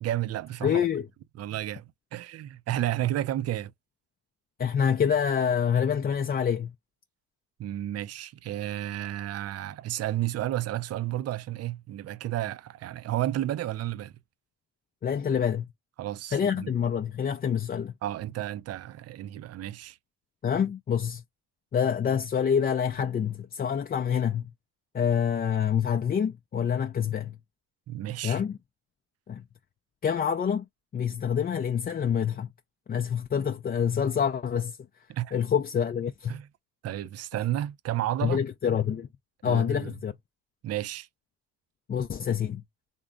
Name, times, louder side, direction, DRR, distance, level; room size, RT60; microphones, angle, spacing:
voice 1, 0.0-0.8 1.4-3.7 7.6-14.1 16.0-16.7 18.0-20.0 27.9-28.4 35.1-35.3 36.3-36.5 36.8-38.4 39.4-39.9 40.6-41.1, right 13 dB, 55° right, 0.5 m, -32 dB
voice 2, 0.6-1.1 4.6-6.7 15.0-15.7 16.3-17.9 20.4-21.2 21.7-24.5 24.9-27.4 28.2-28.6 29.3-29.4 30.0-30.7 30.9-32.5 32.9-34.8 35.3-36.4 38.2-39.1 39.4-40.1 41.9-42.6, left 8 dB, 30° left, 0.4 m, -26 dB
3.5 x 2.1 x 3.7 m
cardioid pair, 90°, 30 cm